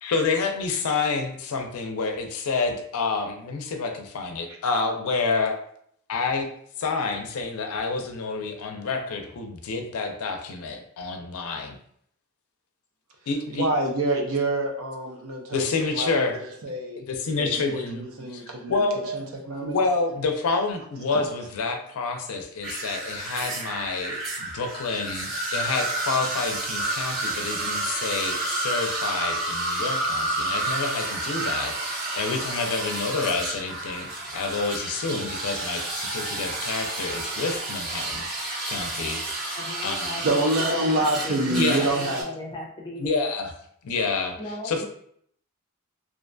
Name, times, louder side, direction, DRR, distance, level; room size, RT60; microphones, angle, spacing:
voice 1, 0.0-5.6 6.1-6.5 6.8-11.8 13.3-13.7 15.5-16.4 17.0-18.0 18.3-19.0 19.6-40.2 41.5-41.9 43.0-43.5 43.8-44.9, left 4 dB, 80° left, 5 dB, 0.4 m, -28 dB
voice 2, 13.6-17.0 17.3-19.8 21.1-21.2 40.2-42.2, right 2 dB, 70° right, 1 dB, 0.5 m, -27 dB
sound 1, 22.6-42.2, right 2 dB, 55° right, 1.0 m, -30 dB
voice 3, 39.6-41.0 41.2-43.2 44.4-44.9, left 2 dB, 20° left, -3 dB, 0.5 m, -37 dB
2.5 x 2.2 x 2.5 m, 0.66 s
head